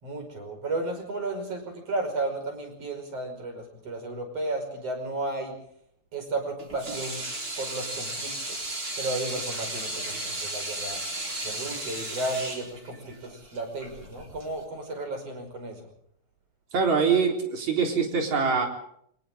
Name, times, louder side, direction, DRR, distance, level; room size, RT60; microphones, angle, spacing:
voice 1, 0.0-5.6 6.1-7.2 7.6-8.7 9.0-11.0 11.4-15.9, right 2 dB, 55° right, 4 dB, 6.5 m, -33 dB
Water tap faucet / Sink (filling or washing), 6.6-14.6, right 2 dB, 30° right, 4.6 m, -34 dB
voice 2, 16.7-18.7, right 5 dB, 70° right, 2 dB, 5.2 m, -24 dB
29.0 x 25.0 x 3.7 m, 0.69 s
omnidirectional pair, 3.3 m